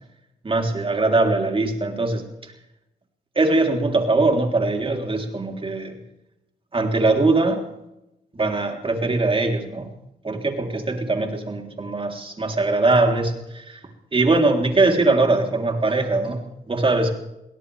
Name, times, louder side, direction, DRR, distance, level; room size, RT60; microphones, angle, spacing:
voice 1, 0.4-2.5 3.4-6.0 6.7-7.7 8.3-9.9 10.2-13.8 14.1-16.4 16.7-17.1, right 2 dB, 35° right, 3 dB, 3.5 m, -21 dB
22.5 x 17.5 x 3.5 m, 0.88 s
cardioid pair, 70°, 16 cm